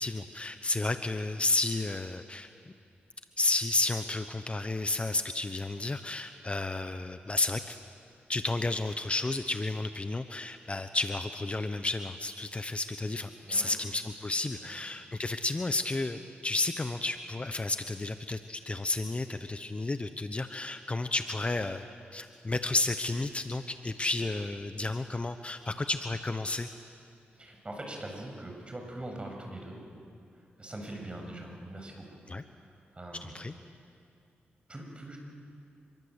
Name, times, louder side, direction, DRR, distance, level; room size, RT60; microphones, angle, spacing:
voice 1, 0.0-2.5 3.4-7.8 8.3-21.9 22.1-26.7 32.3-32.4 33.2-33.5, left 2 dB, 30° left, 9 dB, 1.0 m, -32 dB
voice 2, 13.4-13.7 14.6-14.8 27.4-29.8 30.3-32.2 32.9-33.4 34.7-35.2, right 1 dB, 25° right, 2 dB, 7.3 m, -42 dB
26.0 x 23.0 x 8.3 m, 2.4 s
cardioid pair, 65°, 4 cm